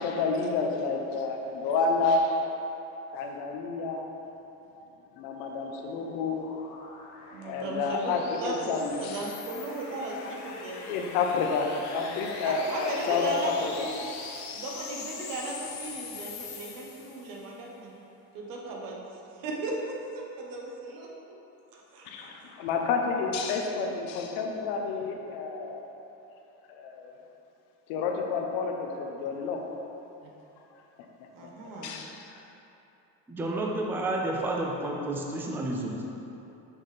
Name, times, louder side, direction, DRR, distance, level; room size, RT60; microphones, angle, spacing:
voice 1, 0.0-2.5 3.1-4.2 4.7-4.9 5.1-6.4 7.4-9.2 10.2-10.4 10.7-11.7 11.9-13.9 22.1-25.9 26.7-27.1 27.9-29.6 31.8-32.2, left 4 dB, 90° left, 2 dB, 0.8 m, -29 dB
sound 1, 4.8-17.5, left 4 dB, 50° left, 0.7 m, -43 dB
voice 2, 7.3-11.0 12.4-14.1 14.5-17.9 18.3-19.0 19.3-19.7 20.1-21.1 21.7-22.5 31.3-32.0, right 2 dB, 65° right, -2 dB, 1.2 m, -37 dB
voice 3, 33.3-36.0, right 2 dB, 5° right, -1 dB, 0.3 m, -30 dB
6.3 x 5.7 x 3.3 m, 2.9 s
cardioid pair, 160°, 36 cm